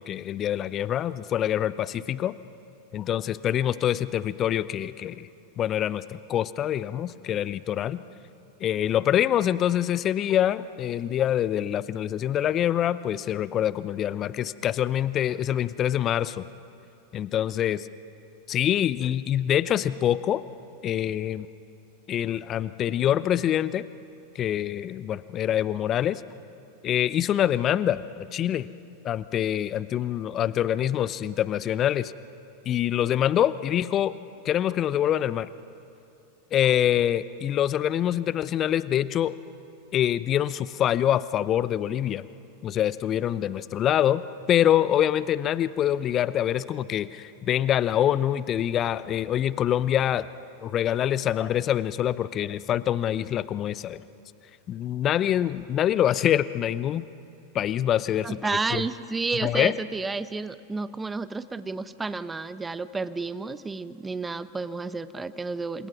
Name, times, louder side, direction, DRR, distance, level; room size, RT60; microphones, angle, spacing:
voice 1, 0.0-2.3 2.9-5.3 5.6-8.0 8.6-16.4 17.1-17.9 18.5-20.4 20.8-21.5 22.1-23.8 24.3-26.2 26.8-28.7 29.0-32.1 32.7-34.1 34.4-35.5 36.5-39.3 39.9-42.2 42.6-44.2 44.5-50.3 50.6-54.0 54.7-57.1 57.5-58.8 59.4-59.7, left 11 dB, 35° left, 16 dB, 0.7 m, -25 dB
voice 2, 58.2-65.9, right 3 dB, 15° right, 14 dB, 0.9 m, -31 dB
28.5 x 27.0 x 6.1 m, 2.7 s
figure-of-eight pair, 90°, 0 cm